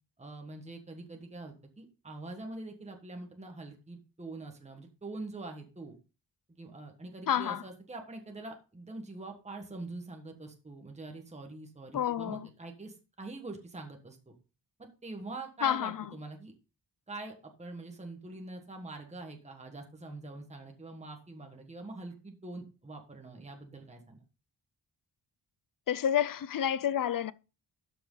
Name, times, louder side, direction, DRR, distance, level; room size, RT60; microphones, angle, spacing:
voice 1, 0.2-5.9 6.5-14.2 14.8-16.5 17.1-24.2, right 2 dB, 15° right, 1.4 m, -44 dB
voice 2, 7.3-7.6 11.9-12.5 15.6-16.1 25.9-27.3, left 10 dB, 45° left, 0.5 m, -29 dB
12.5 x 6.1 x 3.8 m
wide cardioid pair, 175°, 46 cm